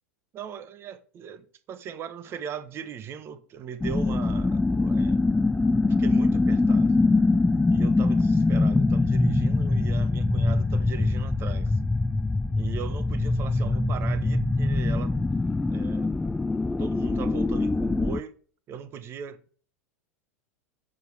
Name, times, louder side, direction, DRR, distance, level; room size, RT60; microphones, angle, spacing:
voice 1, 0.3-5.2 5.8-7.0 7.7-11.8 12.6-15.2 15.7-16.2 16.8-18.4 18.7-19.4, right 8 dB, 30° right, 0.9 m, -39 dB
sound 1, 3.8-18.2, left 2 dB, 5° left, 0.3 m, -23 dB
8.6 x 6.9 x 4.6 m
figure-of-eight pair, 85°, 8 cm